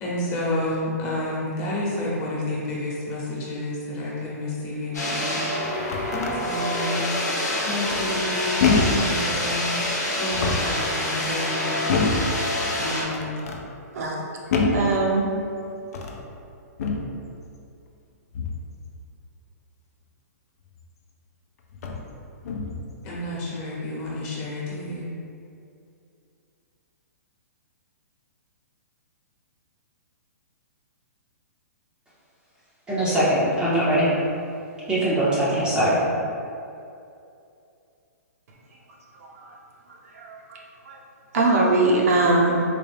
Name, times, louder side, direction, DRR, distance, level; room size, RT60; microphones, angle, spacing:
voice 1, 0.0-5.5 6.1-7.1 7.6-9.8 10.2-12.1 12.8-13.3 23.0-25.1, left 1 dB, 30° left, -6 dB, 1.0 m, -30 dB
sound 1, 4.9-13.0, left 1 dB, 85° left, 0.9 m, -27 dB
sound 2, 5.6-6.4 7.9-8.3 8.6-9.1 10.2-10.8 11.9-12.3 13.1-13.6 14.5-14.9 15.8-16.2 16.8-17.1 18.3-18.7 20.8-20.9 21.7-22.1 22.4-22.9, left 4 dB, 65° left, 0.5 m, -25 dB
voice 2, 13.9-14.3 14.5-15.3 39.2-39.5 40.1-40.6 40.9-41.0 41.3-42.6, right 2 dB, 60° right, -3 dB, 0.7 m, -22 dB
voice 3, 32.9-34.1 34.9-36.0, right 1 dB, 10° right, -11 dB, 0.6 m, -21 dB
3.9 x 2.3 x 3.4 m, 2.5 s
hypercardioid pair, 140°, 9 cm